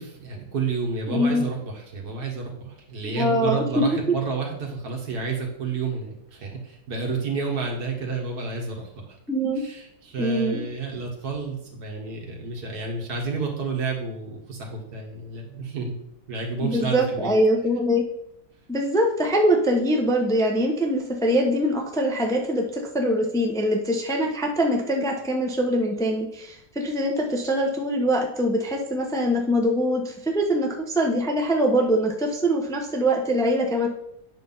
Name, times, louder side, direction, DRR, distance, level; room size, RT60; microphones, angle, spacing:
voice 1, 0.0-9.2 9.6-16.0 16.3-17.3, right 4 dB, 80° right, 0 dB, 2.1 m, -30 dB
voice 2, 1.1-1.5 3.0-3.9 9.3-9.6 10.2-10.6 16.6-18.0 18.7-33.9, equal, 5° left, 1 dB, 0.7 m, -23 dB
8.4 x 5.9 x 4.0 m, 0.76 s
omnidirectional pair, 1.6 m